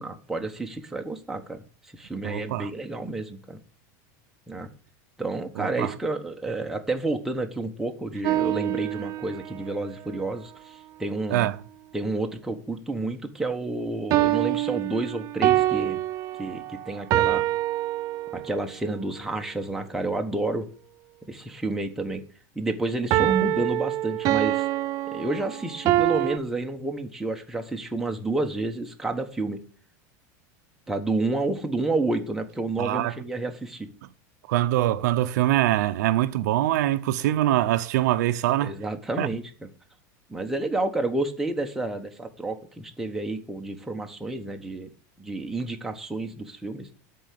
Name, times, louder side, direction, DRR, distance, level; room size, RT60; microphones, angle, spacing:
voice 1, 0.0-1.6 1.9-3.6 4.5-4.7 5.2-11.5 11.9-16.0 16.4-17.5 18.3-20.7 21.3-22.2 22.5-24.7 25.1-29.6 30.9-33.9 38.6-39.7 40.3-44.9 45.2-46.9, right 2 dB, 5° right, 1.2 m, -30 dB
voice 2, 2.2-2.7 5.6-5.9 11.3-11.5 32.8-33.1 34.5-38.7 39.2-39.3, right 14 dB, 80° right, 0.8 m, -23 dB
sound 1, 8.2-9.6 14.1-18.6 23.1-26.4, right 15 dB, 40° right, 0.5 m, -25 dB
12.5 x 4.7 x 8.5 m
supercardioid pair, 155°, 9 cm